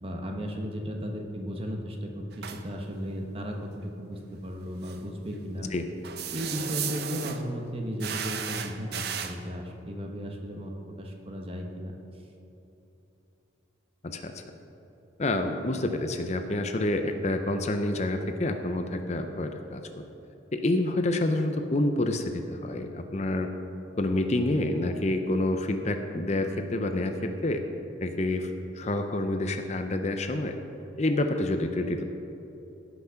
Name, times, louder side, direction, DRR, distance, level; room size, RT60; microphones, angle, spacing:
voice 1, 0.0-5.7 6.3-10.7 11.0-11.9, equal, 30° right, 2 dB, 1.1 m, -35 dB
sound 1, 2.3-2.6 4.8-5.0 6.0-7.4 8.0-9.4, right 8 dB, 55° right, 0.6 m, -34 dB
voice 2, 14.0-14.4 15.2-19.8 20.5-23.5 24.0-27.6 28.0-30.6 31.0-32.0, left 1 dB, 35° left, 6 dB, 0.6 m, -28 dB
16.0 x 6.1 x 5.7 m, 3.0 s
head